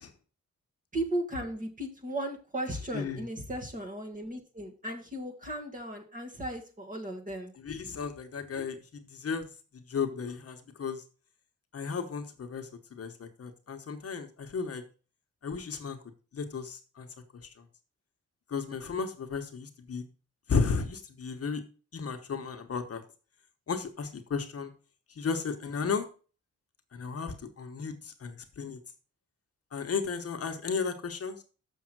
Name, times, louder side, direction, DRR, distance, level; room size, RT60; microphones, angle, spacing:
voice 1, 0.9-7.5 7.8-8.0, right 1 dB, 25° right, 2 dB, 1.8 m, -36 dB
voice 2, 7.6-9.5 9.9-11.0 11.7-14.8 15.4-16.0 16.3-17.1 18.5-20.0 20.5-21.6 21.9-23.0 23.7-24.7 25.1-26.1 26.9-28.8 29.7-31.4, left 5 dB, 50° left, 6 dB, 1.1 m, -34 dB
7.0 x 6.3 x 6.0 m, 0.36 s
wide cardioid pair, 170°, 30 cm